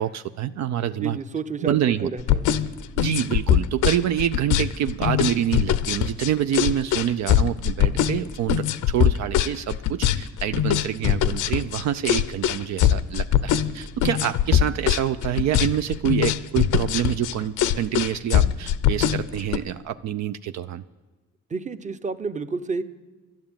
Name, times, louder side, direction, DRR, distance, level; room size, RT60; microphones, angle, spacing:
voice 1, 0.0-1.2 1.6-2.1 3.0-20.8, right 10 dB, 65° right, 11 dB, 0.5 m, -26 dB
voice 2, 1.0-2.5 21.5-22.8, right 4 dB, 25° right, 12 dB, 0.8 m, -30 dB
sound 1, 2.2-19.6, left 10 dB, 80° left, 0.7 m, -22 dB
11.5 x 9.4 x 8.8 m, 1.3 s
cardioid pair, 90°, 30 cm